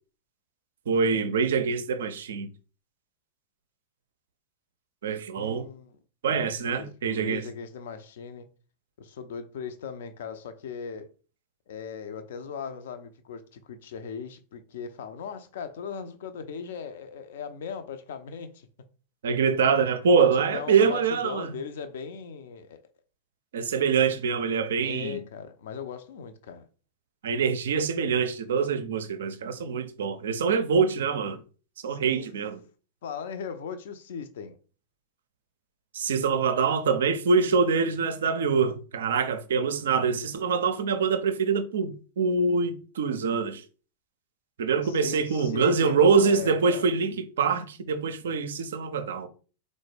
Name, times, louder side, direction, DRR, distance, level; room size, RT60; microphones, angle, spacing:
voice 1, 0.9-2.5 5.0-5.7 6.2-7.4 19.2-21.5 23.5-25.2 27.2-31.4 31.8-32.6 35.9-43.6 44.6-49.3, right 5 dB, 60° right, 0.4 m, -25 dB
voice 2, 5.3-6.0 6.3-8.5 9.0-11.1 11.7-18.7 20.2-22.8 24.8-26.7 31.9-32.3 33.0-34.6 44.8-46.9, left 6 dB, 60° left, 0.4 m, -38 dB
4.0 x 2.1 x 3.2 m
figure-of-eight pair, 90°, 0 cm